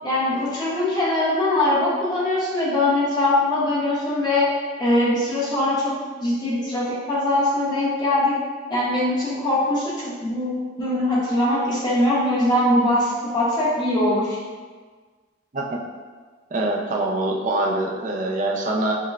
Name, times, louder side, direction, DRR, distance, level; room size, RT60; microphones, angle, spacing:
voice 1, 0.0-4.5 4.8-8.3 8.7-10.5 10.8-14.4, left 1 dB, 20° left, -8 dB, 0.9 m, -22 dB
voice 2, 16.5-19.0, right 2 dB, 40° right, -1 dB, 0.4 m, -24 dB
6.4 x 2.2 x 2.4 m, 1.5 s
head